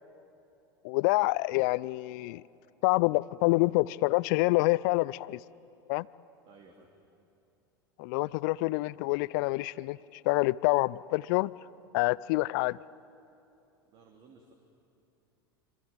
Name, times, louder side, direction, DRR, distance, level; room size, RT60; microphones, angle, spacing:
voice 1, 0.8-2.4 2.8-5.4 5.9-6.1 8.0-11.5 11.9-12.8, left 22 dB, 50° left, 21 dB, 0.5 m, -27 dB
voice 2, 6.4-6.9 13.9-14.5, right 4 dB, 40° right, 2 dB, 3.0 m, -56 dB
26.5 x 25.5 x 7.6 m, 2.7 s
figure-of-eight pair, 80°, 12 cm